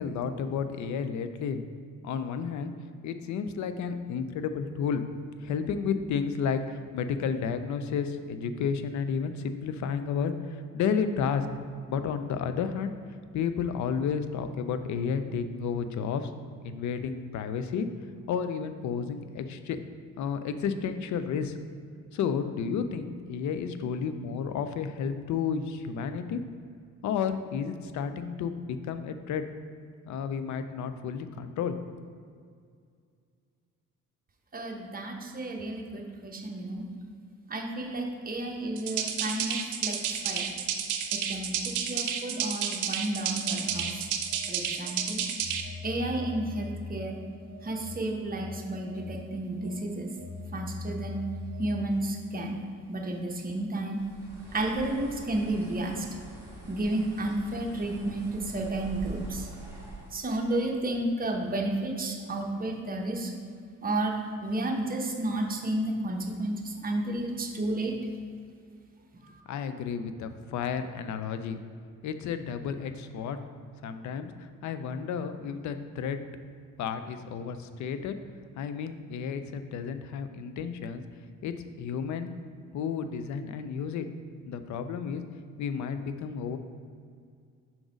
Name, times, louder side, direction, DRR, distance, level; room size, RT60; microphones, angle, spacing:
voice 1, 0.0-1.6 2.0-2.7 3.0-5.0 5.4-10.3 10.7-11.5 11.9-12.9 13.3-16.3 16.6-17.9 18.3-19.8 20.2-21.6 22.1-26.4 27.0-29.4 30.1-31.8 69.5-71.6 72.0-73.4 73.8-74.3 74.6-76.2 76.8-78.1 78.6-81.0 81.4-82.3 82.7-84.1 84.5-85.2 85.6-86.6, left 6 dB, 70° left, 9 dB, 0.5 m, -31 dB
voice 2, 34.5-36.8 37.5-40.0 40.2-40.5 41.1-44.1 44.5-45.2 45.8-47.2 47.6-50.1 50.5-51.2 51.6-52.6 52.9-54.0 54.5-56.1 56.7-59.5 60.1-63.3 63.8-64.1 64.4-67.9 69.2-69.3, right 1 dB, 30° right, 1 dB, 0.9 m, -32 dB
sound 1, 38.8-45.6, right 8 dB, 80° right, 0.6 m, -31 dB
Telephone, 43.5-52.1, left 3 dB, 35° left, 1.2 m, -42 dB
Bird, 54.0-60.2, right 1 dB, 10° right, 1.6 m, -44 dB
6.0 x 3.9 x 5.0 m, 2.2 s
cardioid pair, 90°, 30 cm